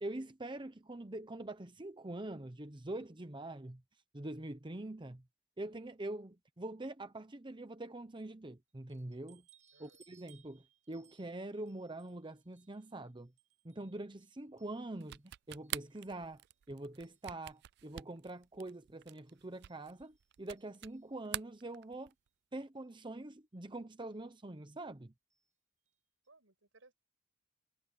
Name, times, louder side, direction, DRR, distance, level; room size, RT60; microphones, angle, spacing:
voice 1, 0.0-3.8 4.1-5.2 5.6-9.4 9.8-13.3 13.6-22.1 22.5-25.1, right 2 dB, 25° right, 0.9 m, -44 dB
sound 1, 8.9-15.2 15.6-16.7 17.0-17.6 18.3-18.4 18.7-18.8 19.3-21.2 22.3-22.4 22.7-22.9 24.0-24.2 25.3-25.5 25.8-25.9 26.2-26.3, right 8 dB, 40° right, 5.7 m, -70 dB
sound 2, 15.0-21.0 21.3-22.3, right 14 dB, 55° right, 0.3 m, -45 dB
voice 2, 26.3-26.9, right 3 dB, 85° right, 5.7 m, -64 dB
head